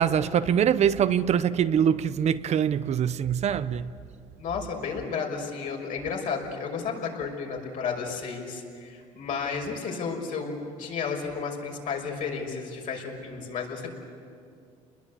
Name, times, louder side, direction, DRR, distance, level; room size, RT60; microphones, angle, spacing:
voice 1, 0.0-3.9, right 8 dB, 50° right, 0.8 m, -23 dB
voice 2, 4.4-13.9, left 5 dB, 65° left, 6.0 m, -32 dB
29.5 x 21.0 x 8.4 m
supercardioid pair, 95°, 15 cm